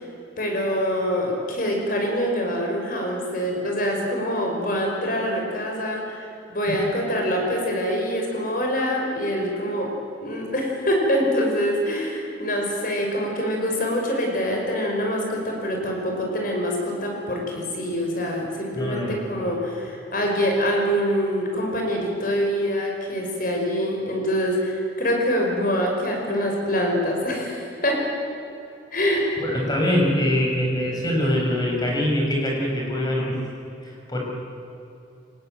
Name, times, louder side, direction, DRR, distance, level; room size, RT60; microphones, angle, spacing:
voice 1, 0.4-6.2 6.5-9.9 10.2-28.0 28.9-29.2, equal, 50° left, 0 dB, 5.6 m, -25 dB
voice 2, 18.7-19.2 29.4-33.4 33.8-34.2, left 1 dB, 20° left, -1 dB, 6.0 m, -23 dB
24.0 x 19.5 x 9.2 m, 2.7 s
head